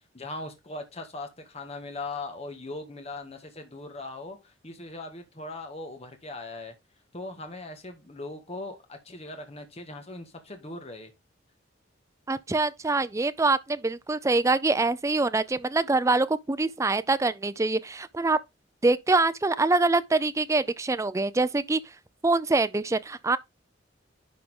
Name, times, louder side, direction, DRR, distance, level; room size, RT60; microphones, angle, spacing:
voice 1, 0.1-6.7 7.1-11.1, left 2 dB, 35° left, 1.7 m, -39 dB
voice 2, 12.3-18.4 18.8-21.8 22.2-23.4, right 3 dB, 15° right, 0.4 m, -24 dB
11.0 x 3.7 x 3.7 m
head